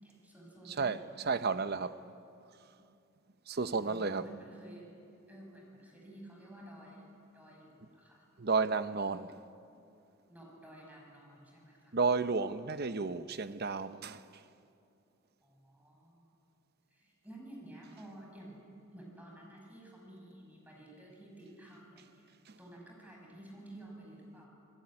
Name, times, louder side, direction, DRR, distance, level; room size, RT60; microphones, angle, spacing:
voice 1, 0.0-1.0 3.8-4.9 5.3-8.3 10.3-12.0 12.6-12.8 15.4-16.3 16.9-18.6 18.9-22.3 22.6-24.5, right 1 dB, 10° right, 6.0 m, -52 dB
voice 2, 0.7-2.0 3.5-4.2 8.4-9.4 11.9-14.4 22.5-22.6, right 4 dB, 50° right, 0.8 m, -32 dB
26.5 x 20.5 x 9.8 m
head